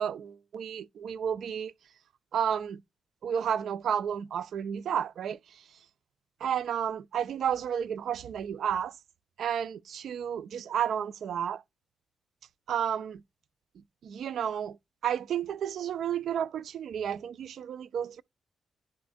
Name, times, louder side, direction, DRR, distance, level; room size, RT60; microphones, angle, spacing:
voice 1, 0.0-1.7 2.3-2.8 3.2-5.6 6.4-9.0 9.4-11.6 12.7-13.2 14.0-14.8 15.0-18.2, right 8 dB, 70° right, 0.3 m, -31 dB
10.0 x 4.1 x 2.5 m
wide cardioid pair, 170°, 0 cm